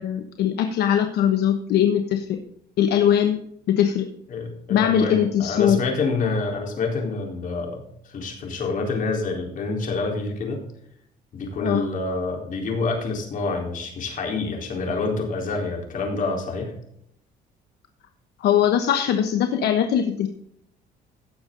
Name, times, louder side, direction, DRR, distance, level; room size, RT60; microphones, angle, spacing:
voice 1, 0.0-2.4 2.8-3.4 3.7-4.0 4.7-5.8 11.6-11.9 18.4-20.3, left 9 dB, 75° left, 7 dB, 1.1 m, -21 dB
voice 2, 4.3-10.6 11.3-16.7, left 3 dB, 50° left, 1 dB, 4.0 m, -27 dB
16.5 x 7.1 x 3.9 m, 0.72 s
cardioid pair, 110°, 17 cm